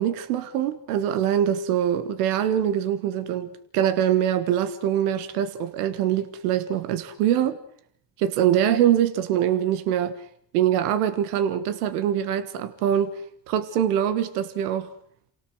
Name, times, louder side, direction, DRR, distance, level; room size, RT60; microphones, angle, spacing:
voice 1, 0.0-7.6 8.2-10.1 10.5-13.2 13.5-14.9, right 10 dB, 90° right, 11 dB, 1.7 m, -23 dB
28.5 x 18.0 x 7.9 m, 0.66 s
hypercardioid pair, 60°, 44 cm